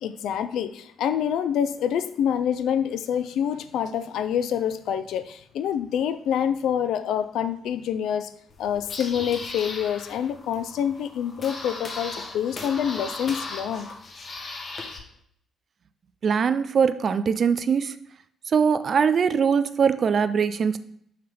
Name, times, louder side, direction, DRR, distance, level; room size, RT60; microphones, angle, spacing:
voice 1, 0.0-8.3 8.6-13.9, left 9 dB, 80° left, 12 dB, 0.4 m, -26 dB
sound 1, 8.5-15.0, left 3 dB, 45° left, 1.0 m, -37 dB
voice 2, 16.2-18.0 18.5-20.8, right 6 dB, 50° right, 12 dB, 0.4 m, -22 dB
5.6 x 5.6 x 3.4 m, 0.68 s
cardioid pair, 90°, 0 cm